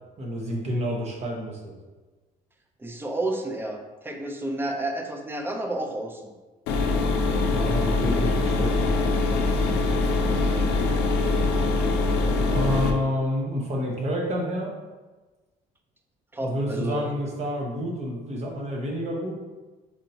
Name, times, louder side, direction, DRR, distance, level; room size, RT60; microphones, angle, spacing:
voice 1, 0.2-1.7 7.5-8.8 12.5-14.7 16.4-19.4, equal, 40° right, -2 dB, 0.9 m, -29 dB
voice 2, 2.8-3.8 4.0-6.2 16.3-17.1, right 1 dB, 15° right, 3 dB, 0.4 m, -30 dB
sound 1, 6.7-12.9, left 3 dB, 90° left, 0.5 m, -23 dB
4.4 x 2.7 x 2.7 m, 1.2 s
cardioid pair, 110°, 17 cm